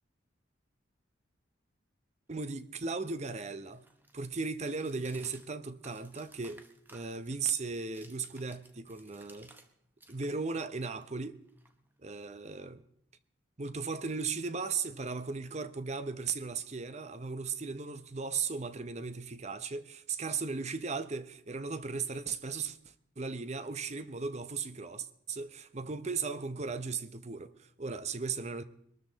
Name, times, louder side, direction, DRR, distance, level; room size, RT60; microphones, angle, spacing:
voice 1, 2.3-3.9 4.1-6.6 6.9-9.5 10.1-11.4 12.0-12.8 13.6-28.6, right 4 dB, 35° right, 0.7 m, -37 dB
sound 1, 2.6-9.7 10.0-12.2, right 2 dB, 10° right, 1.1 m, -59 dB
23.0 x 13.0 x 4.0 m
head